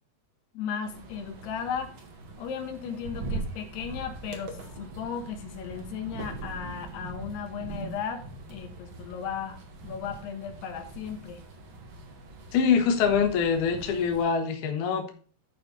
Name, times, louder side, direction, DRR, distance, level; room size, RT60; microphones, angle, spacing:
voice 1, 0.5-1.9 2.4-11.4, left 7 dB, 80° left, 5 dB, 3.4 m, -36 dB
sound 1, 0.8-14.2, right 2 dB, 55° right, 1.4 m, -41 dB
voice 2, 12.5-15.1, left 6 dB, 60° left, 4 dB, 2.5 m, -24 dB
11.5 x 5.5 x 4.0 m, 0.41 s
omnidirectional pair, 4.6 m